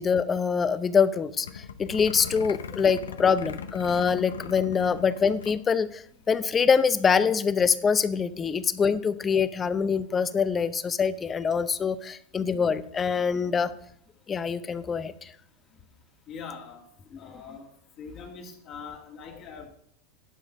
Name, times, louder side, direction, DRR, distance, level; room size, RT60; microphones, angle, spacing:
voice 1, 0.0-13.7 14.3-15.3 17.1-17.2, left 6 dB, 25° left, 15 dB, 0.6 m, -24 dB
sound 1, 1.4-5.6 5.9-6.0 6.2-6.5, left 7 dB, 90° left, 0.7 m, -40 dB
voice 2, 16.3-16.8 17.2-17.7 18.0-19.7, left 5 dB, 45° left, -1 dB, 2.3 m, -42 dB
11.0 x 4.9 x 6.3 m, 0.67 s
hypercardioid pair, 100°, 0 cm